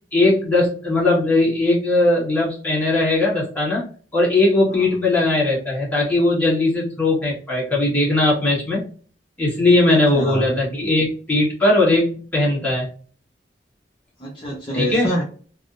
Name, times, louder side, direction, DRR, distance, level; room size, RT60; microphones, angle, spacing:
voice 1, 0.1-3.8 4.1-8.9 9.4-12.9 14.7-15.1, left 2 dB, 10° left, -5 dB, 1.3 m, -19 dB
voice 2, 9.9-10.4 14.2-15.2, equal, 25° left, -5 dB, 0.6 m, -27 dB
3.4 x 2.0 x 2.5 m, 0.41 s
head